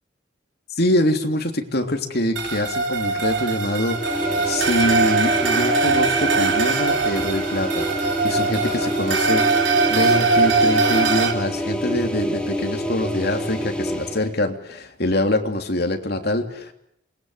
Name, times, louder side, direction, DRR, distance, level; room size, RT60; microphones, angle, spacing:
voice 1, 0.7-4.0 4.4-9.4 9.9-16.7, left 1 dB, 55° left, 4 dB, 3.3 m, -24 dB
sound 1, 2.4-11.3, right 4 dB, 70° right, 3.9 m, -21 dB
sound 2, 3.9-14.3, equal, 5° left, 3.4 m, -27 dB
27.5 x 21.0 x 8.2 m, 0.75 s
head